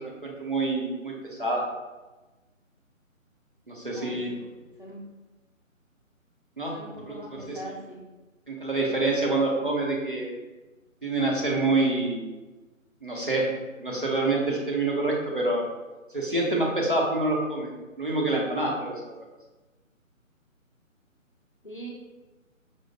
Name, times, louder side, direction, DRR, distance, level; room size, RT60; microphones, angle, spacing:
voice 1, 0.0-1.6 3.7-4.3 6.6-6.8 7.1-7.2 8.5-10.3 11.0-12.2 13.0-15.6 16.1-17.7 18.0-19.1, right 2 dB, 40° right, -3 dB, 0.5 m, -26 dB
voice 2, 3.9-4.5 4.8-5.1 6.7-8.0 21.6-21.9, right 1 dB, 40° left, -3 dB, 0.5 m, -41 dB
5.0 x 2.0 x 2.6 m, 1.1 s
figure-of-eight pair, 150°, 41 cm